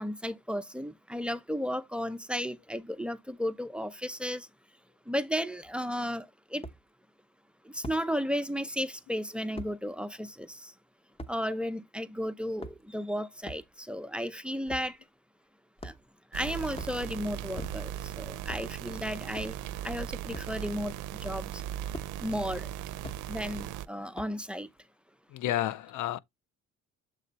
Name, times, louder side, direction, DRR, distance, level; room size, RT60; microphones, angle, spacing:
voice 1, 0.0-4.5 5.1-6.3 6.5-6.6 7.7-10.7 11.3-15.0 15.8-15.9 16.3-17.9 18.2-19.5 19.8-20.9 21.2-21.6 22.2-22.7 23.3-24.7, equal, 5° right, 0.6 m, -34 dB
sound 1, 5.6-5.7 6.6-6.8 7.8-8.0 9.6-9.7 11.2-11.4 12.4-13.0 13.4-13.7 14.7-14.9 15.8-16.2 16.7-17.0 17.5-18.0 18.4-18.7 19.3-19.6 20.3-20.6 21.9-22.1 23.0-23.2 24.1-24.5, equal, 20° left, 0.9 m, -42 dB
sound 2, 16.3-23.9, right 11 dB, 80° right, 0.5 m, -38 dB
voice 2, 25.3-26.2, left 13 dB, 75° left, 0.6 m, -30 dB
7.6 x 3.2 x 4.0 m
cardioid pair, 90°, 30 cm